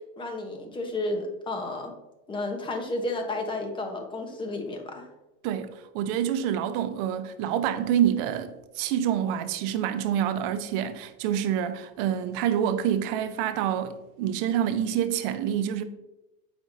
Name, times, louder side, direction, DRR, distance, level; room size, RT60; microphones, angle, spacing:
voice 1, 0.2-1.9 2.3-5.0, left 2 dB, 15° left, 0.9 m, -32 dB
voice 2, 5.4-15.8, right 10 dB, 60° right, 0.7 m, -27 dB
7.7 x 5.2 x 2.6 m
supercardioid pair, 140°, 32 cm